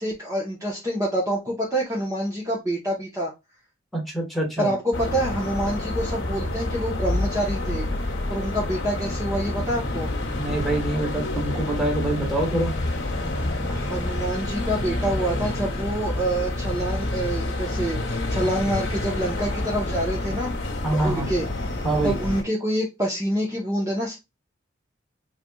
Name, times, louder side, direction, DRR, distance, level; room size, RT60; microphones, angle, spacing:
voice 1, 0.0-3.3 4.6-10.1 13.7-20.5 20.9-24.2, right 1 dB, 15° right, -4 dB, 0.9 m, -27 dB
voice 2, 3.9-4.7 10.4-12.7 20.8-21.3 21.8-22.1, right 2 dB, ahead, -1 dB, 1.4 m, -25 dB
sound 1, 4.9-22.4, left 2 dB, 60° left, 1.1 m, -28 dB
4.0 x 3.3 x 2.3 m, 0.22 s
head